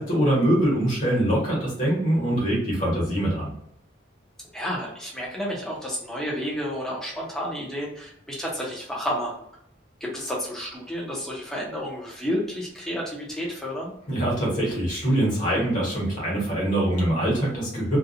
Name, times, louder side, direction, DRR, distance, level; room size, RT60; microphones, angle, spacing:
voice 1, 0.0-3.5 14.1-18.0, right 1 dB, 45° left, -4 dB, 1.2 m, -23 dB
voice 2, 4.5-9.3 10.0-13.9, equal, ahead, -4 dB, 0.6 m, -31 dB
2.5 x 2.2 x 2.6 m, 0.74 s
head